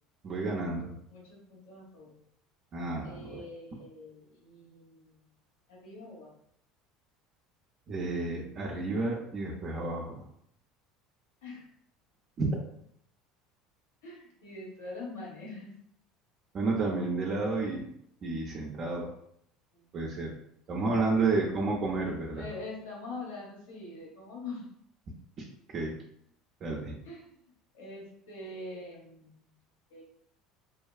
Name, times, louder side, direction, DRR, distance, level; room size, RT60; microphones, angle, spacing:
voice 1, 0.2-1.0 2.7-3.4 7.9-10.2 12.4-12.5 16.5-17.9 18.2-19.1 19.9-20.3 20.7-22.5 25.4-25.5 25.7-26.0 26.6-27.0, right 3 dB, 45° right, -4 dB, 0.5 m, -31 dB
voice 2, 1.1-2.2 3.0-5.3 5.7-6.3 11.4-11.7 14.0-15.7 19.7-20.0 21.1-21.3 22.3-24.7 27.0-29.5 29.9-30.0, left 2 dB, 80° left, -4 dB, 1.1 m, -44 dB
2.7 x 2.3 x 2.3 m, 0.69 s
hypercardioid pair, 80°, 0 cm